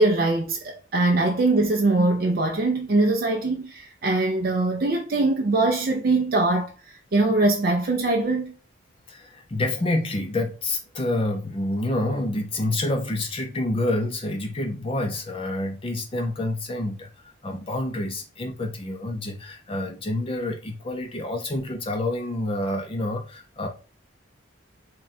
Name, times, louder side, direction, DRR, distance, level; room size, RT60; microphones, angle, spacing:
voice 1, 0.0-8.5, right 2 dB, 45° right, 0.4 m, -22 dB
voice 2, 9.1-23.7, left 1 dB, 30° left, 0.4 m, -28 dB
3.6 x 2.2 x 4.1 m
head